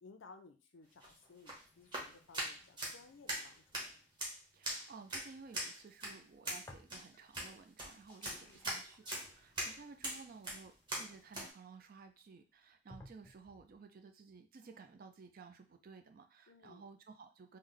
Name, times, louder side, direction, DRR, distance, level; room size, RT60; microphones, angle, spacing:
voice 1, 0.0-3.9 8.5-8.6 16.5-16.9, left 4 dB, 80° left, 7 dB, 0.5 m, -59 dB
sound 1, 0.9-11.5, right 1 dB, 25° right, 1.0 m, -43 dB
voice 2, 4.5-17.6, right 4 dB, 50° right, 7 dB, 0.4 m, -55 dB
sound 2, 6.6-7.4 7.7-11.7 12.3-12.4 12.9-13.8, left 1 dB, 15° left, 0.4 m, -59 dB
3.2 x 2.1 x 3.7 m, 0.33 s
head